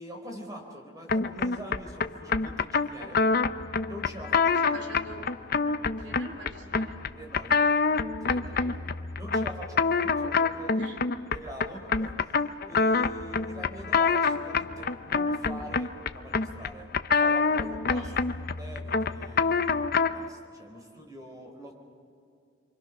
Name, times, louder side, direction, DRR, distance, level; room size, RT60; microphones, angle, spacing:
voice 1, 0.0-3.2 3.8-4.4 6.0-6.1 7.2-7.6 8.2-8.8 9.1-10.8 11.3-16.9 17.2-18.1 18.5-21.7, equal, 20° right, 2 dB, 4.2 m, -44 dB
sound 1, 1.1-20.3, left 4 dB, 50° left, 0.7 m, -26 dB
voice 2, 4.2-5.2 6.0-7.0 8.3-8.8 10.7-11.0 17.9-18.3, right 1 dB, 65° right, 3 dB, 3.2 m, -45 dB
28.0 x 25.0 x 6.1 m, 2.4 s
head